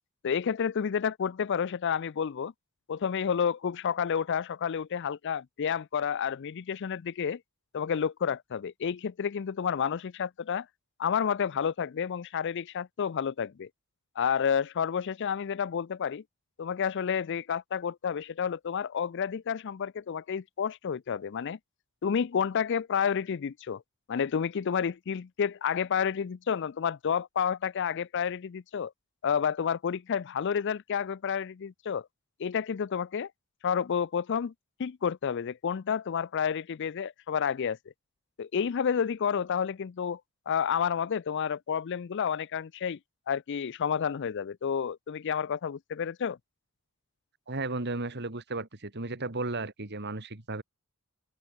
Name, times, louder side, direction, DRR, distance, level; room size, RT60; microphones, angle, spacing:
voice 1, 0.2-2.5 2.9-7.4 7.7-10.7 11.0-13.7 14.2-16.2 16.6-21.6 22.0-23.8 24.1-28.9 29.2-32.1 32.4-33.3 33.6-34.5 34.8-37.8 38.4-40.2 40.5-43.0 43.3-46.4, left 7 dB, 55° left, 0.4 m, -30 dB
voice 2, 47.5-50.6, right 2 dB, 50° right, 2.4 m, -34 dB
head